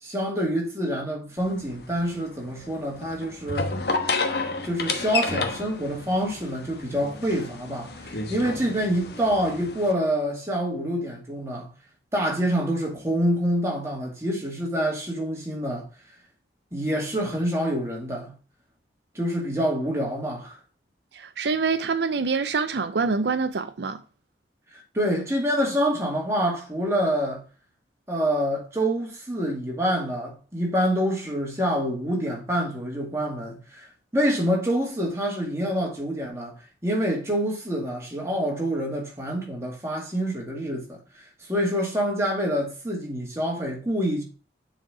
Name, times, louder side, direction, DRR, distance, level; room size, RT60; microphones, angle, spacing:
voice 1, 0.0-3.8 4.6-11.7 12.1-15.9 16.7-18.4 19.1-20.6 24.7-27.4 28.1-36.6 36.8-44.2, equal, 15° right, 2.1 m, -26 dB
sound 1, 1.4-9.9, left 3 dB, 65° left, 1.0 m, -31 dB
voice 2, 21.1-24.0, right 4 dB, 75° right, 0.5 m, -25 dB
7.3 x 4.3 x 4.8 m
head